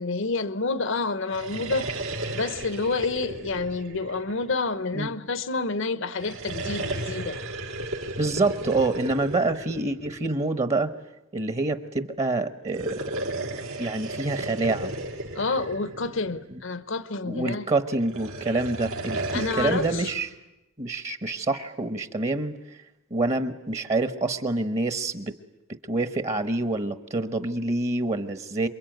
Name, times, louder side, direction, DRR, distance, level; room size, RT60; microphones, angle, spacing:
voice 1, 0.0-2.0 2.3-7.4 15.3-17.7 19.3-20.1, left 3 dB, 65° left, 1.0 m, -29 dB
sound 1, 1.2-4.8 6.1-10.4 12.6-16.6 17.9-20.2, right 2 dB, 90° right, 4.2 m, -34 dB
voice 2, 8.2-10.9 11.3-13.0 13.8-14.9 17.2-20.3 20.8-22.5 23.1-25.4 25.9-28.7, right 2 dB, 35° right, 1.1 m, -27 dB
27.5 x 23.0 x 9.2 m
head